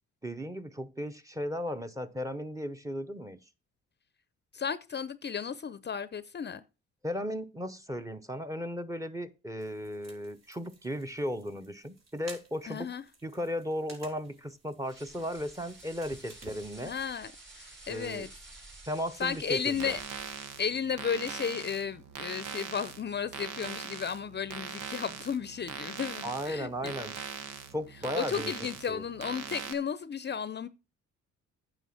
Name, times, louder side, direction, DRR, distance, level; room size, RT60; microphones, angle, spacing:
voice 1, 0.2-3.4 7.0-12.9 13.2-16.9 17.9-18.3 18.9-20.0 26.2-27.2 27.7-28.5 28.9-29.0, equal, 10° right, 1.0 m, -36 dB
voice 2, 4.5-6.6 12.7-13.0 16.8-18.3 19.2-20.0 20.6-26.9 28.1-30.7, left 7 dB, 35° left, 0.6 m, -34 dB
sound 1, 9.6-17.1, right 3 dB, 60° right, 4.1 m, -54 dB
sound 2, 14.9-20.8, right 2 dB, 40° right, 4.5 m, -51 dB
sound 3, 19.7-29.7, right 7 dB, 85° right, 1.2 m, -41 dB
9.2 x 5.7 x 5.9 m
cardioid pair, 90°, 30 cm